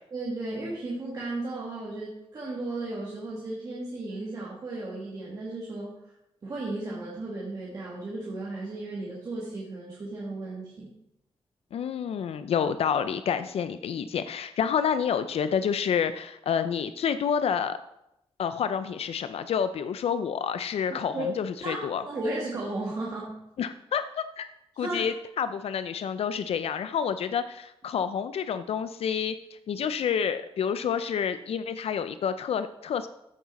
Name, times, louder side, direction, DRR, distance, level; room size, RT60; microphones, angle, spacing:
voice 1, 0.1-6.0 6.4-10.9 21.1-21.3 21.6-23.4 24.7-25.1, right 2 dB, 40° right, -5 dB, 1.8 m, -34 dB
voice 2, 11.7-17.8 18.4-22.0 23.6-24.5 24.8-29.3 29.7-33.1, left 7 dB, 75° left, 11 dB, 0.4 m, -29 dB
14.0 x 6.3 x 4.1 m, 0.84 s
wide cardioid pair, 180°, 10 cm